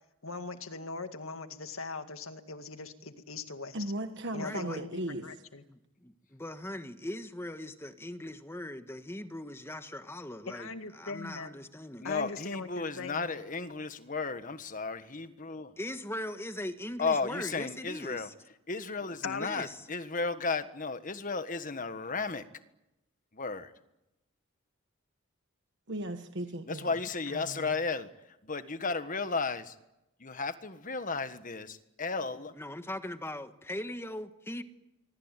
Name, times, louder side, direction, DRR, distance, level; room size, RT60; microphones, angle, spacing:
voice 1, 0.2-3.8 4.3-5.6 10.5-11.5 12.0-13.3 19.2-19.5, left 4 dB, 75° left, 8 dB, 2.1 m, -40 dB
voice 2, 3.7-5.3 25.9-26.9 27.3-27.7, right 1 dB, 60° right, 7 dB, 1.4 m, -37 dB
voice 3, 4.4-4.8 5.7-12.1 15.8-18.3 19.4-19.7 32.5-34.6, left 1 dB, 10° left, 9 dB, 1.4 m, -40 dB
voice 4, 12.0-15.7 17.0-18.3 18.7-22.5 23.3-23.7 26.7-29.7 30.2-32.5, left 4 dB, 40° left, 10 dB, 1.5 m, -34 dB
24.5 x 24.0 x 9.1 m, 0.93 s
head